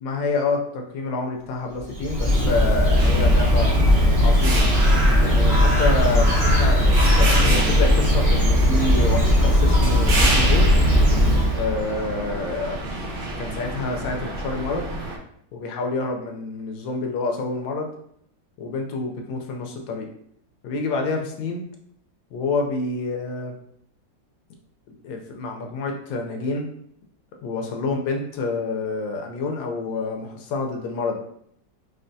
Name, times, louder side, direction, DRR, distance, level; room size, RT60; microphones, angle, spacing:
voice 1, 0.0-3.7 4.2-4.8 5.2-10.7 11.5-12.8 13.4-14.8 15.5-17.9 18.6-20.1 20.6-21.6 22.3-23.5 24.9-26.7 27.4-31.2, left 3 dB, 85° left, 2 dB, 1.4 m, -28 dB
Bird, 1.8-11.8, equal, 40° right, 0.8 m, -18 dB
sound 1, 3.0-15.2, right 1 dB, 75° right, 1.4 m, -29 dB
4.0 x 3.3 x 2.6 m, 0.68 s
omnidirectional pair, 2.0 m